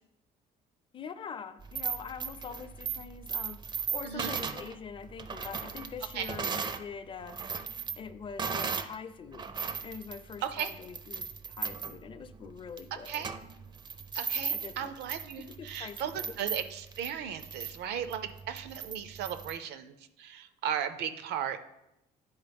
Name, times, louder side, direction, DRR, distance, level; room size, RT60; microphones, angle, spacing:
voice 1, 0.9-7.4 8.0-9.5 9.8-13.2 14.6-14.9 15.6-16.3, left 6 dB, 30° left, 10 dB, 0.5 m, -44 dB
sound 1, 1.6-6.8 7.2-9.0 9.3-19.6, right 6 dB, 25° right, 0.4 m, -37 dB
voice 2, 4.0-4.4 6.1-6.3 10.4-10.7 13.1-13.3 14.1-21.7, right 9 dB, 80° right, 10 dB, 0.6 m, -36 dB
9.7 x 4.1 x 3.5 m, 0.87 s
cardioid pair, 110°, 17 cm